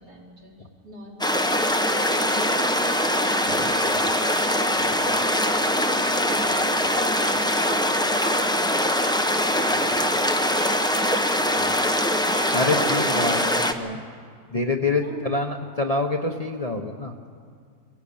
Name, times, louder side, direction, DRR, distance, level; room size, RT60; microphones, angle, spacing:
voice 1, 0.0-6.5 6.8-10.2 10.5-13.3 15.0-15.8, equal, 80° right, -3 dB, 3.9 m, -41 dB
sound 1, 1.2-13.7, left 1 dB, 5° left, 0.6 m, -22 dB
voice 2, 12.5-14.0 14.5-17.1, left 2 dB, 30° left, 3 dB, 0.9 m, -26 dB
22.5 x 16.5 x 8.6 m, 2.1 s
omnidirectional pair, 1.7 m